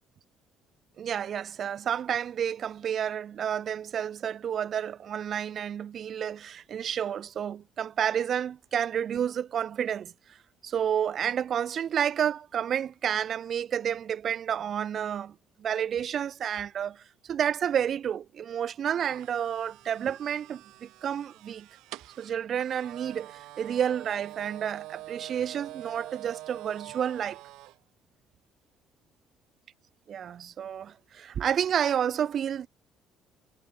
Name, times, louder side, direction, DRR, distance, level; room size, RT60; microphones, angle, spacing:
voice 1, 1.0-10.4 10.6-21.7 22.2-27.4 30.1-32.7, right 9 dB, 35° right, 1.4 m, -30 dB
sound 1, 19.0-27.8, right 18 dB, 80° right, 4.8 m, -45 dB
cardioid pair, 170°, 0 cm